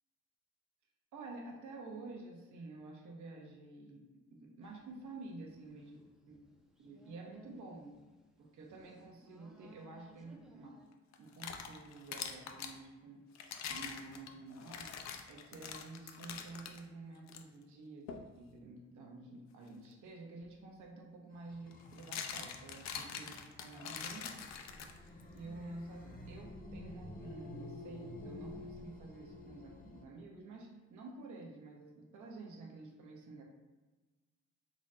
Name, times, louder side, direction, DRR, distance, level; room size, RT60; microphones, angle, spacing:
voice 1, 1.1-6.0 6.3-6.4 6.8-8.0 8.4-10.8 11.2-13.3 13.7-14.9 15.3-23.3 23.6-24.3 25.3-33.4, right 3 dB, 75° right, 0 dB, 0.9 m, -50 dB
sound 1, 4.6-10.9, equal, ahead, 0.5 m, -62 dB
sound 2, 11.1-12.8 13.3-16.8 17.3-17.4 18.1-18.3 20.4-20.5 21.7-25.2, left 7 dB, 60° left, 0.5 m, -44 dB
sound 3, 21.3-30.0, left 1 dB, 30° left, 0.7 m, -50 dB
3.9 x 2.1 x 3.8 m, 1.2 s
cardioid pair, 90°, 30 cm